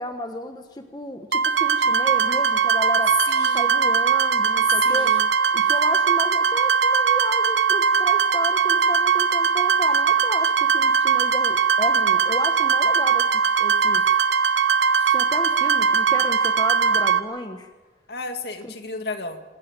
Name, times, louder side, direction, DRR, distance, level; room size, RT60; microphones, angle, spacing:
voice 1, 0.0-3.2 3.5-5.2 5.5-14.1 15.1-17.7 18.6-18.7, left 1 dB, 20° left, 6 dB, 1.1 m, -32 dB
sound 1, 1.3-17.2, right 6 dB, 80° right, 1.0 m, -20 dB
voice 2, 3.3-3.7 4.8-5.3 15.0-15.1 18.1-19.4, left 3 dB, 65° left, 6 dB, 2.1 m, -33 dB
27.5 x 13.5 x 8.9 m, 1.3 s
head